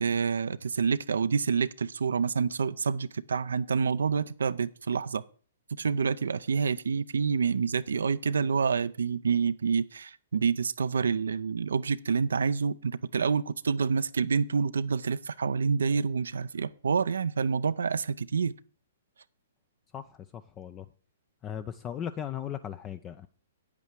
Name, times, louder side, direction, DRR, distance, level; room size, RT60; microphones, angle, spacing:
voice 1, 0.0-5.2 5.7-18.5, right 5 dB, 80° right, 0.5 m, -28 dB
voice 2, 20.3-20.8 21.4-23.3, left 9 dB, 25° left, 0.5 m, -37 dB
8.9 x 8.4 x 4.7 m
hypercardioid pair, 130°, 0 cm